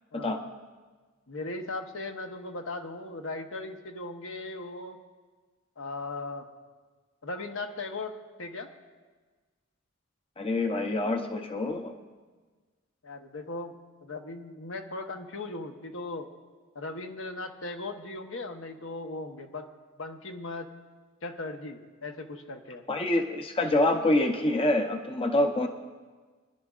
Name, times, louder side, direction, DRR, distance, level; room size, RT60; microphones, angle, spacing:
voice 1, 0.1-0.5 1.3-5.0 5.8-6.5 7.2-8.7 13.0-16.3 16.7-19.7 20.0-20.7 21.2-22.8, left 2 dB, 70° left, 5 dB, 1.0 m, -38 dB
voice 2, 10.4-11.9 22.9-25.7, left 1 dB, 25° left, 4 dB, 0.7 m, -26 dB
25.0 x 11.0 x 2.4 m, 1.4 s
head